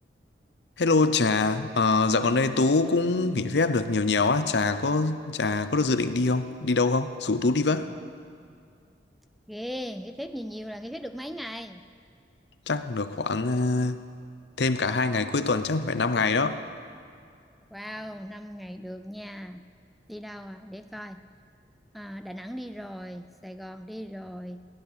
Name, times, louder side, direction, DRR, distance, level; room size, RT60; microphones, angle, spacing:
voice 1, 0.8-8.0 12.7-14.0 14.6-16.6, left 3 dB, 75° left, 11 dB, 0.7 m, -24 dB
voice 2, 9.5-11.9 17.7-19.7 20.1-21.2 21.9-24.6, equal, ahead, 9 dB, 0.4 m, -38 dB
17.0 x 11.0 x 6.9 m, 2.2 s
head